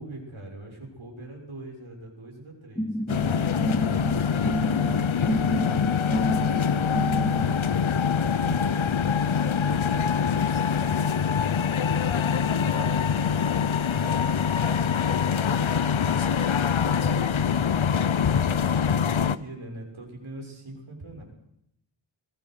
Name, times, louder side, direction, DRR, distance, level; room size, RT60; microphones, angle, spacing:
voice 1, 0.0-4.0 4.5-5.3 6.3-11.2 12.1-12.8 13.9-18.3 19.0-21.2, right 1 dB, 85° right, 0 dB, 6.9 m, -44 dB
sound 1, 2.8-7.6, equal, 10° left, 1.6 m, -29 dB
sound 2, 3.1-19.4, left 7 dB, 80° left, 0.8 m, -24 dB
voice 2, 12.4-13.3, equal, 10° right, 3 dB, 5.3 m, -47 dB
26.0 x 19.0 x 6.6 m, 0.76 s
wide cardioid pair, 60°, 47 cm